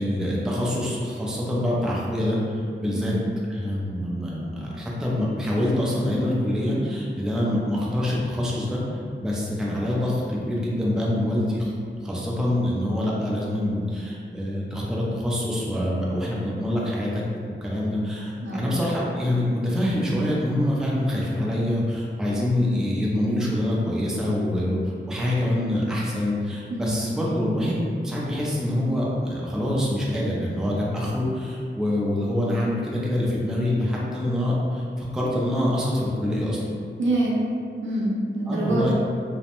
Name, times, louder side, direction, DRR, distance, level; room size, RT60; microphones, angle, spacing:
voice 1, 0.0-3.1 3.5-11.7 12.0-36.6 38.5-38.9, left 1 dB, 5° right, -5 dB, 0.3 m, -25 dB
voice 2, 18.4-18.7 26.7-27.0 37.0-37.4 37.8-38.9, right 1 dB, 75° right, -5 dB, 0.6 m, -25 dB
2.5 x 2.0 x 2.8 m, 2.3 s
wide cardioid pair, 140°, 20 cm